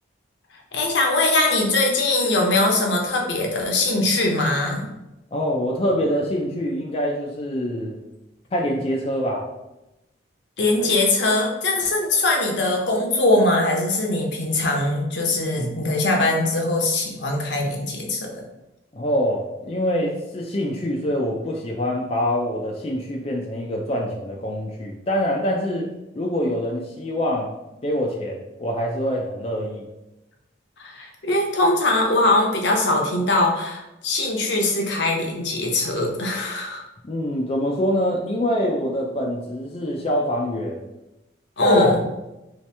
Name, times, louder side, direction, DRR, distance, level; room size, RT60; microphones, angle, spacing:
voice 1, 0.7-4.9 10.6-18.4 30.8-36.8 41.6-41.9, left 2 dB, 70° left, 0 dB, 0.7 m, -21 dB
voice 2, 5.3-8.0 8.5-9.5 18.9-25.9 26.1-27.5 27.8-29.9 37.0-40.9 41.6-42.0, equal, 30° left, -1 dB, 0.4 m, -25 dB
3.1 x 2.9 x 3.3 m, 0.95 s
head